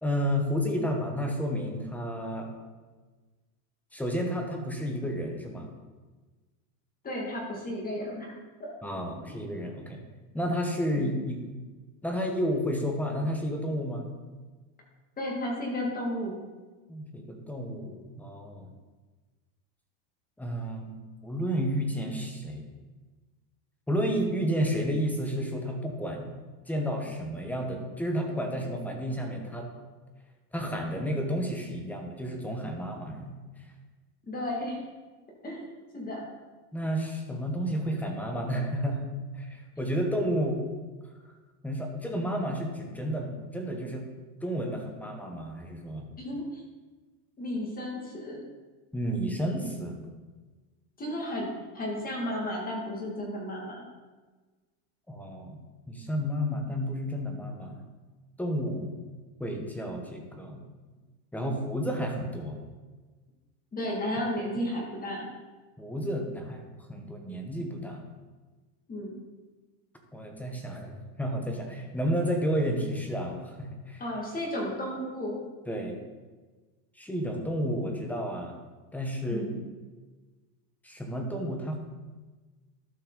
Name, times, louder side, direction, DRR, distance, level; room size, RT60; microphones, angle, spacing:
voice 1, 0.0-2.5 3.9-5.7 8.8-10.0 10.3-11.4 12.0-14.1 16.9-18.7 20.4-21.0 21.2-22.6 23.9-26.3 26.7-29.7 30.5-33.4 36.7-40.6 41.6-44.1 44.4-46.0 48.9-50.0 55.1-55.6 55.9-57.8 58.4-58.9 59.4-60.6 61.3-62.6 65.8-68.0 70.1-74.0 75.7-75.9 77.0-78.6 78.9-79.5 80.8-81.8, equal, 5° left, 2 dB, 1.0 m, -31 dB
voice 2, 7.0-8.3 8.6-8.7 11.0-11.2 15.2-16.4 34.3-34.8 35.4-35.6 35.9-36.3 46.2-46.6 47.4-48.4 51.0-53.8 63.7-65.3 68.9-69.2 74.0-75.4 79.3-79.6, left 1 dB, 20° left, -2 dB, 1.9 m, -33 dB
12.5 x 5.6 x 3.9 m, 1.3 s
supercardioid pair, 145°, 46 cm